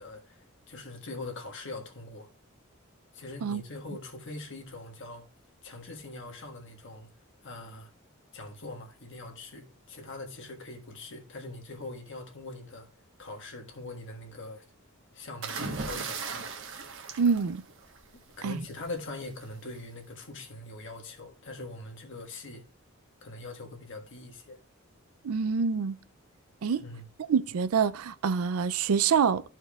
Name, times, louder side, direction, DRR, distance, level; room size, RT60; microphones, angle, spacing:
voice 1, 0.0-2.3 3.1-5.3 5.6-7.1 7.4-7.9 8.3-12.9 13.2-14.6 15.1-16.5 18.4-22.6 23.2-24.6 26.7-27.1, left 2 dB, 60° left, 1.5 m, -42 dB
sound 1, 15.4-18.2 19.4-19.7, right 4 dB, 60° right, 1.1 m, -37 dB
voice 2, 17.2-17.6 18.4-18.6 25.2-26.0 26.6-26.8 27.3-29.4, right 6 dB, 85° right, 0.4 m, -26 dB
13.5 x 4.6 x 2.3 m
head